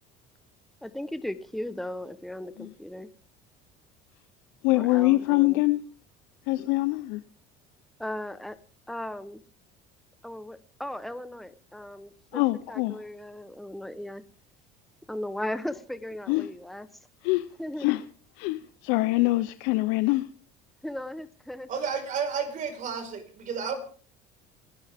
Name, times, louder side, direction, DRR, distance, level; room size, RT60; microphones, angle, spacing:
voice 1, 0.8-3.1 4.7-5.6 8.0-8.6 8.9-9.4 10.2-12.4 12.7-14.2 15.1-16.9 17.6-17.9 20.8-21.7, left 1 dB, ahead, 1.0 m, -37 dB
voice 2, 4.6-5.8 6.5-7.2 12.3-13.0 16.3-16.5 17.2-17.5 17.8-18.0 18.4-20.3, left 20 dB, 80° left, 0.8 m, -24 dB
voice 3, 21.7-23.7, right 6 dB, 45° right, 4.9 m, -31 dB
28.5 x 11.5 x 3.6 m
cardioid pair, 125°, 18 cm